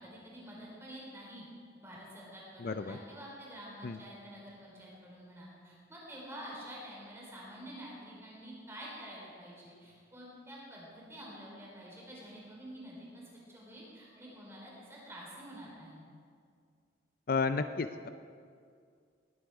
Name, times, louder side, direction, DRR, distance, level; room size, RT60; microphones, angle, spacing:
voice 1, 0.0-1.5 1.8-13.2 13.5-16.0, equal, 15° right, -5 dB, 4.2 m, -48 dB
voice 2, 2.6-3.0 3.8-4.0 17.3-18.1, left 4 dB, 55° left, 10 dB, 0.5 m, -32 dB
20.0 x 10.5 x 4.8 m, 2.2 s
head